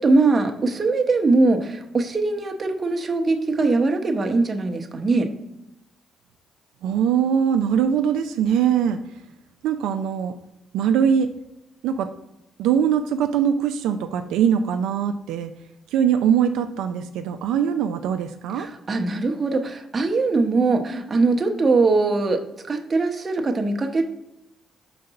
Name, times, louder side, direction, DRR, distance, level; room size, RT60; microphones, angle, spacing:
voice 1, 0.0-5.3 18.6-22.4 22.7-24.0, right 3 dB, 30° right, 4 dB, 0.9 m, -21 dB
voice 2, 6.8-9.0 9.6-10.3 10.7-11.3 11.8-12.1 12.6-15.5 15.9-18.7, right 8 dB, 90° right, 6 dB, 0.4 m, -22 dB
5.1 x 4.0 x 5.6 m, 0.87 s
cardioid pair, 90°, 0 cm